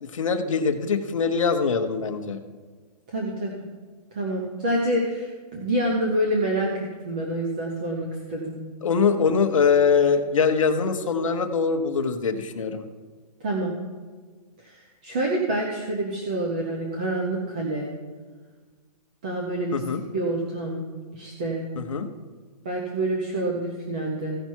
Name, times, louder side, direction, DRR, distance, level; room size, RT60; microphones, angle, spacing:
voice 1, 0.0-2.4 8.8-12.8 19.7-20.0 21.8-22.1, left 5 dB, 50° left, 6 dB, 1.0 m, -23 dB
voice 2, 3.1-3.7 4.1-8.6 13.4-13.7 14.6-17.9 19.2-19.8 20.1-20.8 21.1-21.7 22.6-24.4, right 1 dB, 10° right, -1 dB, 0.5 m, -27 dB
15.5 x 5.7 x 4.5 m, 1.5 s
hypercardioid pair, 175°, 21 cm